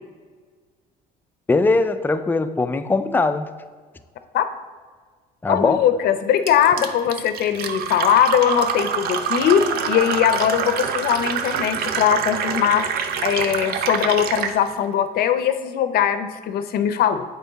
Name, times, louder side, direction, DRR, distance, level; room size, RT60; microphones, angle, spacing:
voice 1, 1.5-3.5 5.4-5.8, left 3 dB, 10° left, 9 dB, 0.4 m, -20 dB
voice 2, 5.5-12.9 13.2-17.2, left 9 dB, 65° left, 10 dB, 0.6 m, -20 dB
Fill (with liquid), 6.5-14.6, right 7 dB, 65° right, 0.6 m, -26 dB
7.9 x 4.4 x 4.0 m, 1.5 s
cardioid pair, 110°, 17 cm